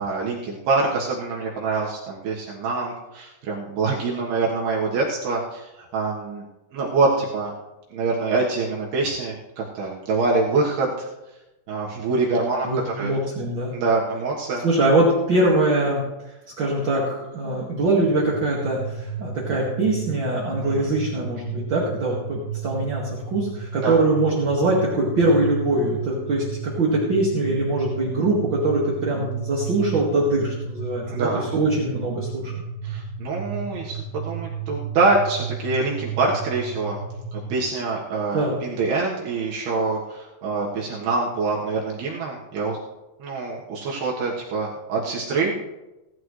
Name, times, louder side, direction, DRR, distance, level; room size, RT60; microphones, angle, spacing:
voice 1, 0.0-6.4 6.7-7.5 7.9-11.1 11.7-13.1 13.7-14.6 20.8-20.9 23.8-23.9 31.1-31.4 32.8-37.0 37.3-42.8 43.2-45.7, right 3 dB, 70° right, -3 dB, 3.3 m, -25 dB
voice 2, 12.6-13.7 14.6-23.0 23.3-32.5 38.3-38.6, right 2 dB, 40° right, -4 dB, 1.8 m, -22 dB
sound 1, 18.0-37.6, right 5 dB, 45° left, 2.5 m, -33 dB
17.5 x 12.0 x 3.2 m, 1.0 s
omnidirectional pair, 4.8 m